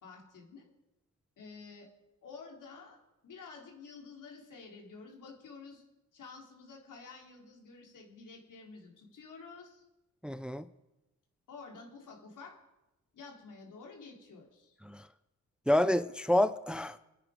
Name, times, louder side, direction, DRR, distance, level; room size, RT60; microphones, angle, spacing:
voice 1, 0.0-0.7 1.4-1.9 2.2-3.0 3.2-5.8 6.1-9.8 11.5-12.6 13.1-14.8, left 4 dB, 80° left, 3.9 m, -50 dB
voice 2, 10.2-10.6 14.8-15.0 15.7-17.0, left 1 dB, 5° right, 0.5 m, -28 dB
26.0 x 9.6 x 5.2 m
cardioid pair, 85°, 31 cm